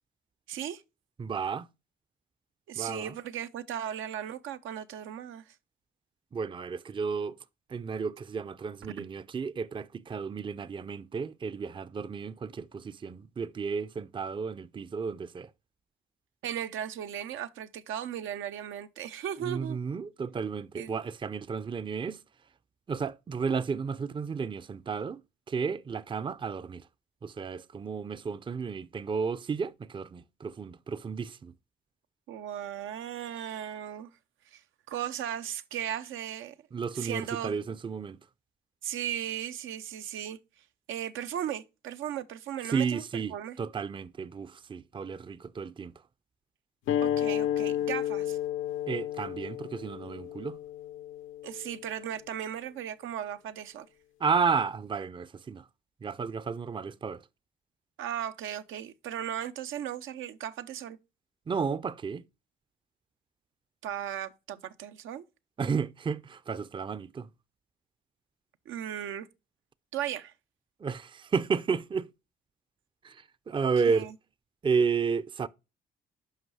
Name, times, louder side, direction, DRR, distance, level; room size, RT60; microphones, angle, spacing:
voice 1, 0.5-0.8 2.7-5.5 9.0-9.1 16.4-19.8 20.7-21.0 32.3-34.1 34.5-34.6 34.9-36.5 36.9-37.6 38.8-40.4 40.9-43.6 47.0-48.4 51.4-53.9 58.0-61.0 63.8-65.3 68.7-69.3 69.9-70.3 73.8-74.1, right 10 dB, 80° right, 0.7 m, -36 dB
voice 2, 1.2-1.7 2.8-3.1 6.3-7.4 7.7-15.5 19.4-22.2 22.9-25.2 25.5-26.9 27.2-31.5 36.7-38.2 42.7-45.9 48.9-50.6 54.2-55.7 56.0-57.2 61.5-62.2 65.6-67.3 70.8-72.1 73.0-74.1 74.6-75.5, right 5 dB, 25° right, 0.5 m, -32 dB
sound 1, 46.9-52.0, left 11 dB, 85° left, 0.9 m, -32 dB
7.9 x 5.5 x 4.8 m
cardioid pair, 90°, 20 cm